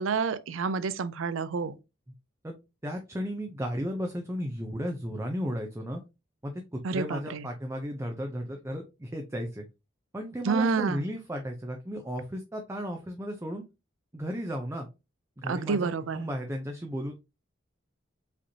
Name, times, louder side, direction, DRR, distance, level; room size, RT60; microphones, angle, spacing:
voice 1, 0.0-1.7 6.8-7.5 10.4-11.0 15.4-16.2, right 4 dB, 80° right, 0.5 m, -29 dB
voice 2, 2.8-6.0 6.4-9.6 10.1-13.6 14.1-14.9 15.4-17.2, equal, 15° right, 0.4 m, -34 dB
5.0 x 3.0 x 2.7 m
head